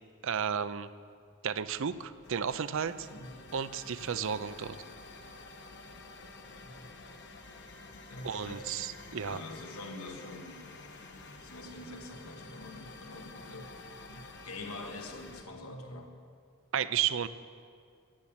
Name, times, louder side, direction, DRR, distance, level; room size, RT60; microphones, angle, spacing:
voice 1, 0.2-0.9 1.4-3.1 3.5-4.8 8.2-9.4 16.7-17.3, right 7 dB, 60° right, 14 dB, 0.5 m, -33 dB
sound 1, 1.5-15.4, left 3 dB, 55° left, 1.2 m, -50 dB
voice 2, 3.1-3.4 6.5-6.9 8.1-8.8 9.2-10.7 11.4-13.7 14.0-16.1, left 2 dB, 80° left, 3 dB, 1.8 m, -45 dB
16.5 x 7.3 x 8.8 m, 2.3 s
head